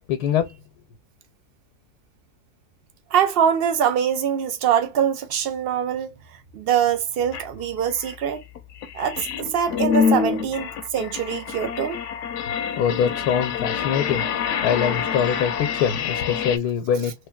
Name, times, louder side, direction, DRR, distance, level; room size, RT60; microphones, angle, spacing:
voice 1, 0.1-0.5 12.8-14.2 14.6-17.1, left 8 dB, 85° left, 1.2 m, -23 dB
voice 2, 3.1-6.1 6.5-8.4 8.9-12.0, right 8 dB, 80° right, 0.5 m, -23 dB
sound 1, 7.3-7.4 7.9-16.6, left 7 dB, 65° left, 0.8 m, -26 dB
3.2 x 3.1 x 2.2 m
omnidirectional pair, 1.6 m